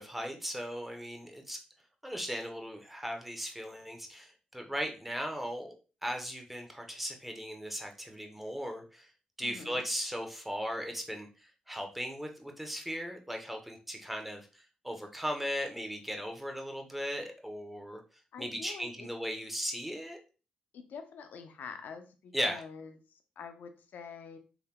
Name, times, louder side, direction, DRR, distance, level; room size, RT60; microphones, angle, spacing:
voice 1, 0.0-1.6 2.0-5.7 6.0-9.1 9.4-18.0 18.4-20.2 22.3-22.6, equal, 5° right, 3 dB, 0.8 m, -37 dB
voice 2, 9.4-9.8 18.3-19.1 20.7-24.4, left 6 dB, 75° left, 7 dB, 0.5 m, -46 dB
3.3 x 2.8 x 2.2 m, 0.35 s
supercardioid pair, 55°, 3 cm